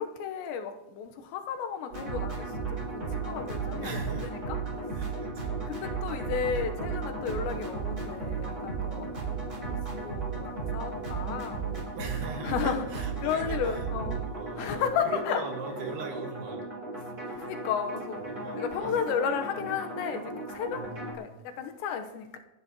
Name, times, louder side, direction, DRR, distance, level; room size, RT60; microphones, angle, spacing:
voice 1, 0.0-4.6 5.7-9.1 9.4-11.9 12.4-12.8 13.2-14.2 14.6-15.4 17.3-18.2 18.6-20.8 21.1-22.4, left 7 dB, 90° left, 5 dB, 3.3 m, -33 dB
sound 1, 1.9-21.1, right 4 dB, 20° right, 3.6 m, -35 dB
voice 2, 3.8-4.3 5.0-5.6 12.0-13.9 14.3-16.6 17.2-17.5 18.3-18.9 20.7-21.3, right 3 dB, 70° right, 2 dB, 3.7 m, -40 dB
28.0 x 10.5 x 3.0 m, 1.0 s
omnidirectional pair, 5.0 m